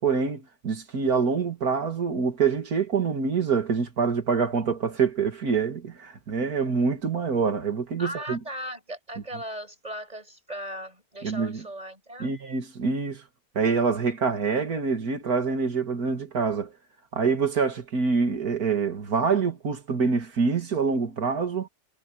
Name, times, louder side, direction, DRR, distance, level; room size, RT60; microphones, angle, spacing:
voice 1, 0.0-8.4 11.2-11.7 12.2-13.2 13.5-16.7 17.1-21.7, right 5 dB, 80° right, 2.6 m, -26 dB
voice 2, 8.0-12.3, equal, 25° right, 6.2 m, -37 dB
omnidirectional pair, 1.6 m